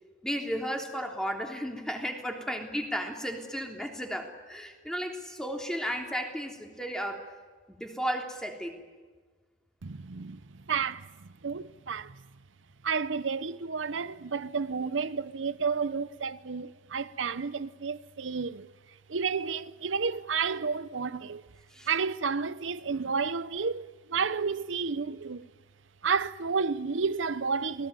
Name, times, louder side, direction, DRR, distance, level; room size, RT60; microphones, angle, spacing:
voice 1, 0.2-7.3 7.7-8.8 21.7-21.9, equal, 5° left, 3.3 m, -34 dB
voice 2, 9.8-12.2 12.8-18.7 19.1-21.4 21.9-25.5 26.0-27.9, right 5 dB, 85° right, 0.8 m, -31 dB
28.0 x 19.0 x 9.6 m
head